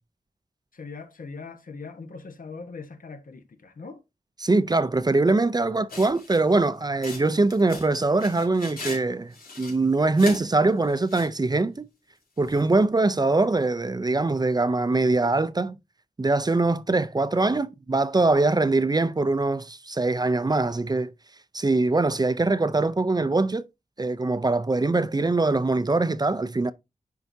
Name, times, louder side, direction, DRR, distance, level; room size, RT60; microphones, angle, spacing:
voice 1, 0.7-4.0, left 4 dB, 70° left, 1.1 m, -41 dB
voice 2, 4.4-11.9 12.4-15.8 16.2-21.1 21.5-23.7 24.0-26.7, right 3 dB, 25° right, 0.5 m, -23 dB
sound 1, 5.9-6.5 7.0-9.0 9.3-10.4 10.9-11.4 12.5-12.6, left 3 dB, 90° left, 2.9 m, -39 dB
10.5 x 4.7 x 2.7 m
wide cardioid pair, 90°, 15 cm